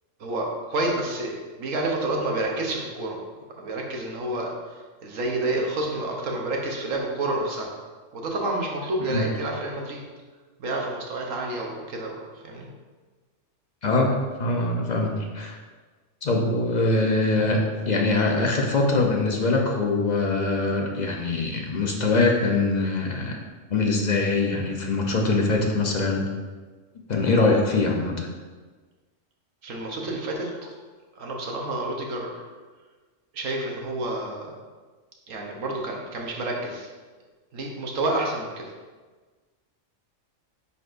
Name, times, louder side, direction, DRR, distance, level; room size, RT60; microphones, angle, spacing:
voice 1, 0.2-3.2 3.6-7.7 8.1-10.0 10.6-12.7 29.6-30.7 31.2-32.4 33.3-34.6 35.3-36.9 37.5-38.7, right 2 dB, 75° right, 0 dB, 1.3 m, -29 dB
voice 2, 13.8-15.6 16.2-17.6 17.9-23.4 23.7-26.2 27.1-28.3, left 3 dB, 45° left, 1 dB, 0.7 m, -23 dB
9.5 x 4.1 x 2.6 m, 1.4 s
omnidirectional pair, 1.4 m